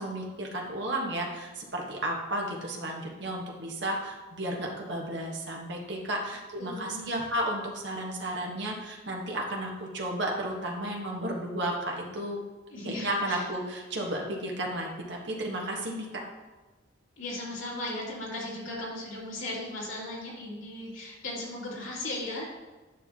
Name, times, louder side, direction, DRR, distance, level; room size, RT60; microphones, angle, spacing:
voice 1, 0.0-12.4 12.8-16.1, right 1 dB, 60° right, -1 dB, 1.4 m, -33 dB
voice 2, 6.6-7.2 12.7-13.4 14.0-14.1 17.2-22.5, left 1 dB, 90° left, -5 dB, 2.8 m, -37 dB
9.9 x 6.4 x 2.9 m, 1.2 s
head